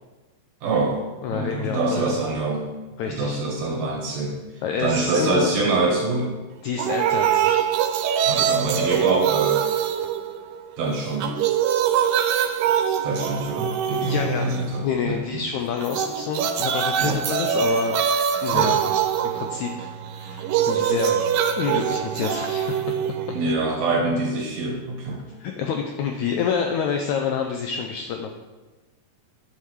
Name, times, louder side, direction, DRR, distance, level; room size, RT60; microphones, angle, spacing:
voice 1, 0.6-1.0 1.3-2.7 3.1-4.4 4.8-6.4 8.3-9.6 10.8-11.4 13.0-15.4 17.0-17.2 18.5-18.7 23.3-25.3, right 3 dB, 60° right, 1 dB, 1.9 m, -25 dB
voice 2, 1.2-2.2 3.0-3.4 4.6-5.5 6.6-7.7 8.4-8.7 14.0-14.5 14.8-18.0 18.4-18.8 19.2-21.2 21.6-23.0 25.4-28.3, left 6 dB, 85° left, 4 dB, 1.7 m, -28 dB
sound 1, 6.8-10.8 11.1-14.8 15.8-23.8, right 9 dB, 80° right, 2.4 m, -24 dB
9.9 x 5.8 x 4.7 m, 1.2 s
omnidirectional pair, 4.1 m